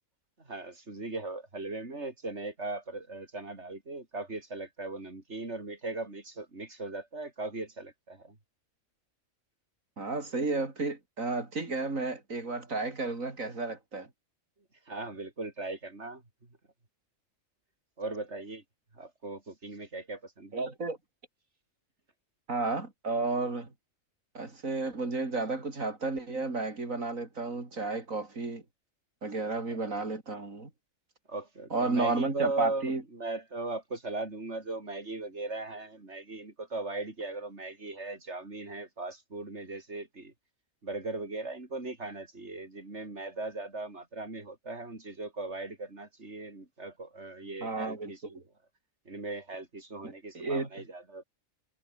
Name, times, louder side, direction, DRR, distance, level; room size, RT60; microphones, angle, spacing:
voice 1, 0.5-8.4 14.9-16.2 18.0-18.6 18.9-20.6 29.8-29.9 31.3-32.8 33.1-40.3 40.8-48.2 49.1-51.2, right 2 dB, 55° right, 4.6 m, -38 dB
voice 2, 10.0-14.1 20.5-21.0 22.5-23.7 24.3-28.6 29.2-30.7 31.7-33.0 47.6-48.4 50.0-50.7, right 3 dB, 85° right, 4.3 m, -32 dB
omnidirectional pair, 1.4 m